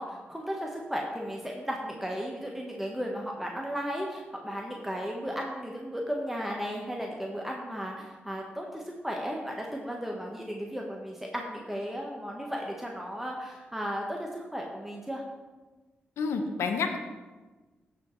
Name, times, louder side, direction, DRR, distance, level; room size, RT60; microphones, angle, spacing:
voice 1, 0.0-15.2, equal, 5° right, -1 dB, 1.3 m, -35 dB
voice 2, 16.2-17.0, left 5 dB, 85° left, 6 dB, 0.8 m, -29 dB
14.0 x 4.9 x 3.2 m, 1.3 s
supercardioid pair, 45°, 5 cm